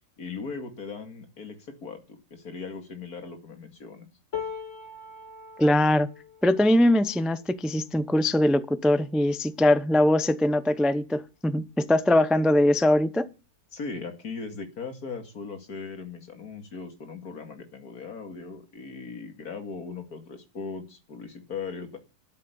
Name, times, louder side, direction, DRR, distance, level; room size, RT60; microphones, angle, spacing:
voice 1, 0.2-4.1 13.7-22.0, left 4 dB, 70° left, 2.7 m, -38 dB
sound 1, 4.3-10.5 11.1-11.3 11.5-12.3 13.3-13.4, left 6 dB, 50° left, 2.4 m, -43 dB
voice 2, 5.6-6.1 6.4-13.3, left 1 dB, ahead, 0.4 m, -22 dB
12.5 x 7.5 x 9.2 m
omnidirectional pair, 1.7 m